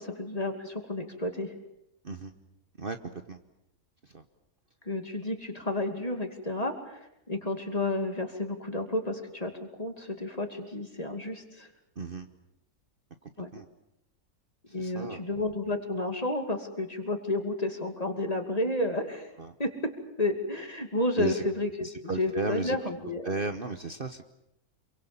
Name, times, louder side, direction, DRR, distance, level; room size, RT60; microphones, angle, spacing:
voice 1, 0.0-1.5 4.8-11.7 13.4-13.5 14.7-19.3 19.6-19.9 20.2-21.9 22.2-23.3, left 2 dB, 25° left, 6 dB, 2.7 m, -31 dB
voice 2, 2.8-3.4 4.0-4.2 11.9-12.3 13.2-13.7 14.7-15.2 19.4-19.5 21.2-21.4 21.8-22.8 23.2-24.2, right 4 dB, 40° right, 7 dB, 1.2 m, -35 dB
27.5 x 23.5 x 7.2 m, 0.83 s
omnidirectional pair, 1.5 m